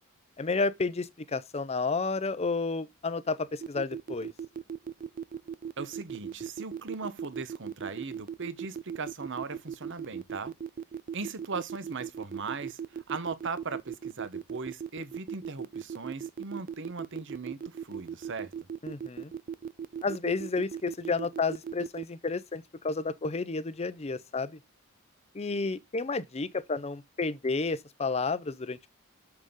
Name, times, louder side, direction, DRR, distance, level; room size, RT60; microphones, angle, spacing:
voice 1, 0.4-4.3 18.8-19.3 20.0-24.6 25.3-28.9, left 4 dB, 30° left, 0.5 m, -31 dB
sound 1, 3.6-22.0, right 7 dB, 40° right, 0.3 m, -37 dB
voice 2, 5.8-10.5 11.1-18.5, right 4 dB, 55° right, 0.9 m, -38 dB
6.9 x 6.3 x 3.6 m
head